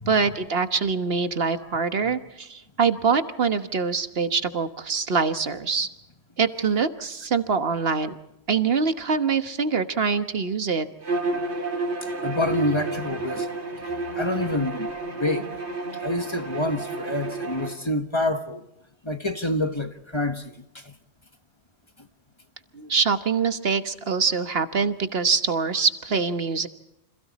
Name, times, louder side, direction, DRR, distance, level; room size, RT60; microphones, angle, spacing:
voice 1, 0.1-5.9 6.4-8.1 8.5-10.9 22.7-26.7, right 5 dB, 65° right, 1.4 m, -24 dB
voice 2, 1.7-2.1 12.0-13.5 13.7-13.8 14.1-14.9 15.1-15.5 16.0-18.6 19.0-20.9, left 1 dB, 25° left, 1.3 m, -27 dB
Bowed string instrument, 11.0-17.8, right 3 dB, 85° right, 3.0 m, -31 dB
29.5 x 26.5 x 4.2 m
omnidirectional pair, 1.1 m